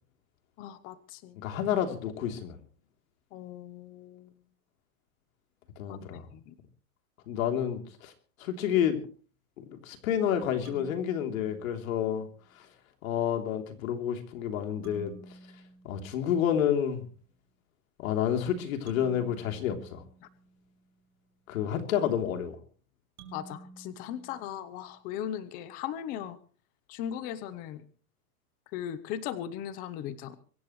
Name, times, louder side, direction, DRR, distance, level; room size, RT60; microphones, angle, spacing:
voice 1, 0.6-1.4 3.3-4.3 5.9-6.5 20.2-20.3 23.3-26.4 26.9-27.8 28.7-30.4, left 10 dB, 20° left, 15 dB, 0.7 m, -38 dB
voice 2, 1.4-2.6 5.8-6.2 7.3-8.1 8.4-9.0 9.6-12.3 12.6-12.7 13.0-15.1 15.8-17.0 18.0-20.0 21.5-22.5, left 9 dB, 60° left, 5 dB, 3.4 m, -29 dB
sound 1, 10.6-12.3 14.8-16.9 18.9-21.0 23.2-25.2, right 3 dB, 75° right, 6.6 m, -52 dB
24.0 x 15.0 x 3.2 m, 0.41 s
supercardioid pair, 175°, 46 cm